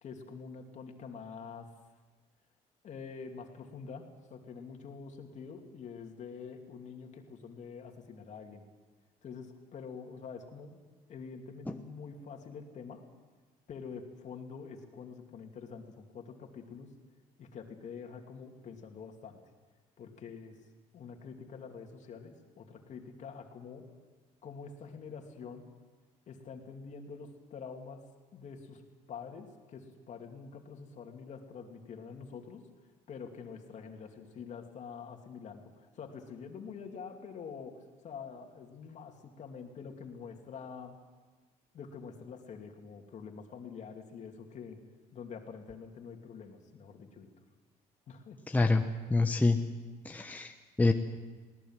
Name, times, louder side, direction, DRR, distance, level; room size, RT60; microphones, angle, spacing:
voice 1, 0.0-1.7 2.8-8.7 9.2-10.8 11.1-13.1 13.7-16.9 17.4-19.4 20.0-20.6 20.9-23.9 24.4-25.7 26.3-28.0 28.3-28.8 29.1-32.7 33.1-41.0 41.7-44.8 45.1-47.3 48.1-48.4, left 5 dB, 50° left, 3 dB, 2.8 m, -46 dB
voice 2, 48.5-48.8 49.1-49.6 50.0-50.9, left 3 dB, 10° left, 5 dB, 1.0 m, -26 dB
21.0 x 18.0 x 7.6 m, 1.4 s
cardioid pair, 95°, 15 cm